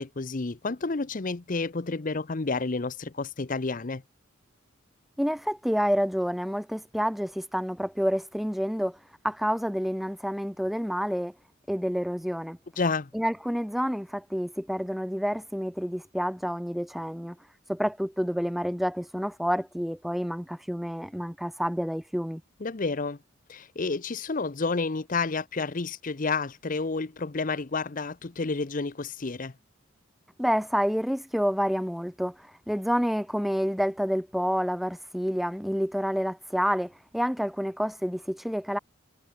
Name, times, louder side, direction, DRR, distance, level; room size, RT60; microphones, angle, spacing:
voice 1, 0.0-4.0 12.8-13.1 22.6-23.2 23.5-29.5, left 4 dB, 40° left, 0.7 m, -30 dB
voice 2, 5.2-9.0 9.2-11.3 11.7-12.6 13.1-17.4 17.7-22.4 30.4-38.8, equal, ahead, 0.9 m, -28 dB
head